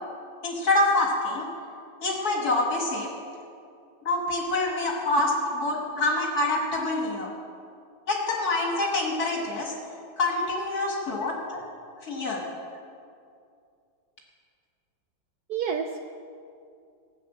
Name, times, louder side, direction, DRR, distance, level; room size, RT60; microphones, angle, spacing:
voice 1, 0.4-1.5 2.0-3.1 4.0-7.3 8.1-9.7 10.2-11.6 12.0-12.4, left 2 dB, 45° left, -1 dB, 2.1 m, -26 dB
voice 2, 15.5-16.1, right 6 dB, 85° right, 5 dB, 0.8 m, -30 dB
16.0 x 8.4 x 6.1 m, 2.4 s
omnidirectional pair, 2.4 m